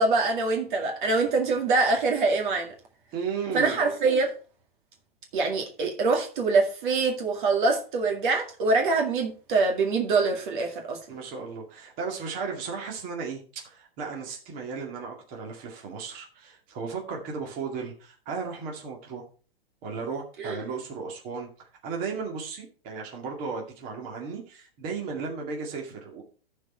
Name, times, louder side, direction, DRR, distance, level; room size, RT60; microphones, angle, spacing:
voice 1, 0.0-2.7 3.5-4.3 5.3-11.0 20.4-20.6, right 3 dB, 55° right, 2 dB, 2.1 m, -24 dB
voice 2, 3.1-3.9 11.1-19.2 19.8-26.2, right 5 dB, 30° right, 0 dB, 2.2 m, -35 dB
14.0 x 4.7 x 4.3 m, 0.38 s
hypercardioid pair, 160°, 29 cm